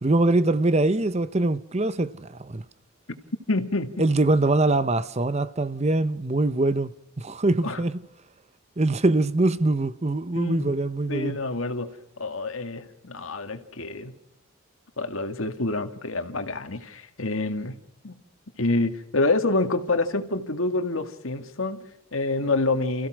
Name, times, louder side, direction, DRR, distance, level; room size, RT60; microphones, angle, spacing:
voice 1, 0.0-2.6 4.0-8.0 8.8-11.4, right 2 dB, 30° right, 0.8 m, -23 dB
voice 2, 3.5-4.1 7.6-7.8 10.3-10.7 11.1-11.9 12.2-14.1 15.0-17.8 18.0-18.2 18.6-23.1, left 2 dB, 70° left, 2.0 m, -27 dB
30.0 x 15.5 x 6.3 m
head